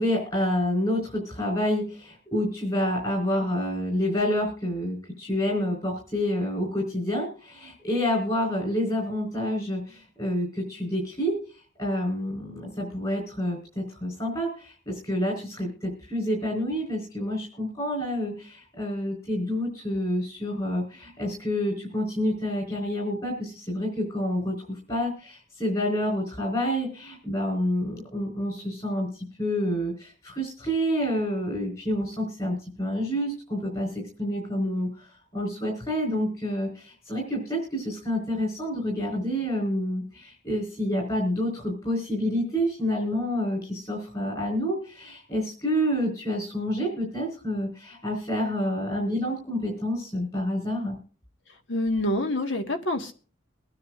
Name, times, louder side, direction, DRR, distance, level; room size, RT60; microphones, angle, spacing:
voice 1, 0.0-51.0, equal, 25° left, -1 dB, 4.2 m, -28 dB
voice 2, 51.7-53.1, left 1 dB, 75° left, 6 dB, 1.6 m, -26 dB
23.5 x 9.7 x 2.5 m, 0.40 s
head